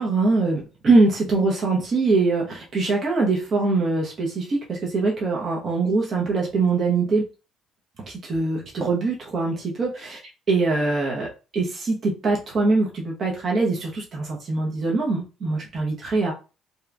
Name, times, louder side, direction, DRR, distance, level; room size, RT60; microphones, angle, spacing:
voice 1, 0.0-7.3 8.0-10.2 10.5-11.3 11.5-16.3, right 3 dB, 45° right, -2 dB, 0.9 m, -23 dB
2.9 x 2.3 x 2.5 m, 0.31 s
supercardioid pair, 85°, 0 cm